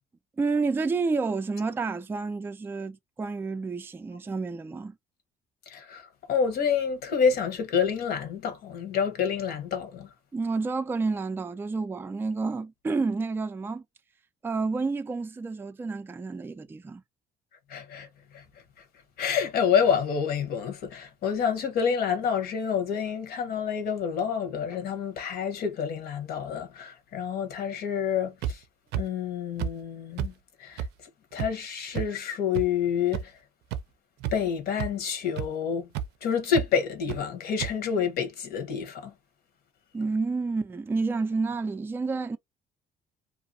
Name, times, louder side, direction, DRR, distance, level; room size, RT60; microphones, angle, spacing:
voice 1, 0.4-5.0 10.3-13.8 14.4-17.0 39.9-42.4, right 4 dB, 15° right, 0.3 m, -29 dB
voice 2, 5.7-10.1 17.7-18.4 18.8-18.9 19.2-28.6 28.9-30.3 30.6-30.9 31.3-33.4 34.3-35.9 36.2-39.1, left 7 dB, 65° left, 1.1 m, -28 dB
sound 1, 28.4-28.5 28.9-29.0 29.6-29.7 30.2-30.3 30.8-30.9 31.4-31.5 31.9-32.0 32.5-32.6 33.1-33.2 33.7-33.8 34.2-34.5 34.8-34.9 35.4-35.5 35.9-36.1 36.5-36.7 37.1-37.2 37.6-37.7, right 9 dB, 80° right, 0.5 m, -30 dB
2.6 x 2.2 x 2.6 m
cardioid pair, 110°, 17 cm